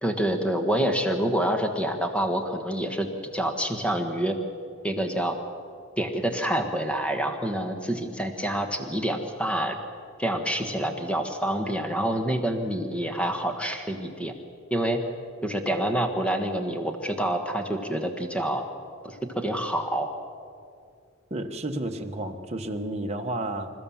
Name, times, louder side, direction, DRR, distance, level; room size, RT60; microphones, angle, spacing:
voice 1, 0.0-3.1 3.3-4.4 4.8-5.4 6.0-9.8 10.2-14.3 14.7-15.0 15.4-18.6 19.0-20.1, right 1 dB, 5° left, 5 dB, 1.4 m, -27 dB
voice 2, 21.3-23.7, right 1 dB, 30° right, 3 dB, 1.3 m, -31 dB
27.5 x 14.5 x 7.2 m, 2.3 s
head